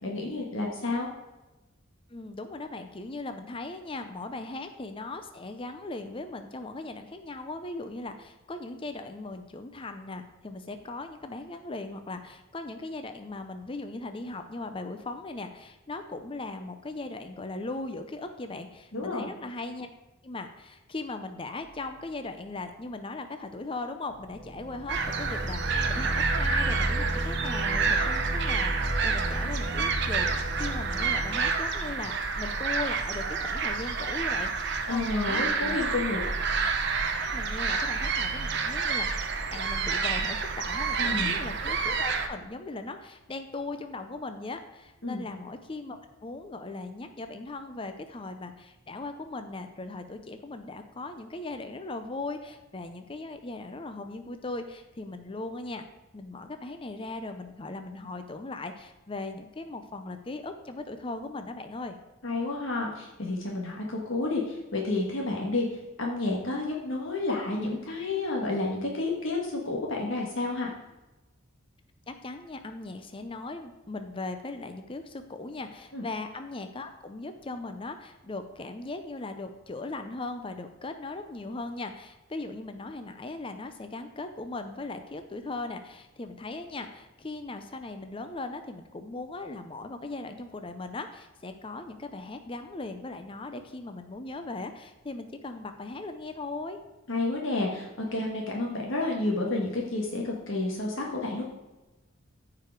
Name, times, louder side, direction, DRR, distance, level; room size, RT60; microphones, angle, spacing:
voice 1, 0.0-1.1 18.9-19.3 34.9-36.2 41.0-41.3 45.0-45.2 62.2-70.7 75.9-76.0 97.1-101.4, left 2 dB, 65° left, -2 dB, 1.4 m, -30 dB
voice 2, 2.1-19.9 20.2-35.8 37.3-55.8 56.1-62.0 72.1-96.8, left 2 dB, 25° left, 8 dB, 0.5 m, -38 dB
sound 1, 24.2-31.5, equal, 20° right, 1.5 m, -33 dB
sound 2, 24.9-42.3, right 5 dB, 55° right, 0.8 m, -29 dB
14.5 x 4.9 x 4.6 m, 1.1 s
head